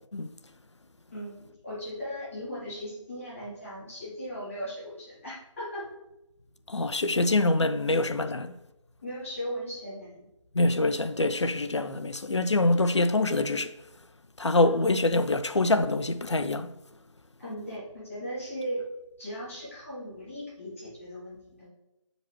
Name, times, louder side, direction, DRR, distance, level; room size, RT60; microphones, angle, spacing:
voice 1, 1.1-5.9 7.9-8.0 9.0-10.3 14.6-14.8 17.4-18.8 19.2-21.7, equal, 25° left, 2.4 m, -38 dB
voice 2, 6.7-8.6 10.5-13.7 14.4-16.7, left 2 dB, 60° left, 0.5 m, -25 dB
7.3 x 5.2 x 3.1 m
figure-of-eight pair, 165°, 16 cm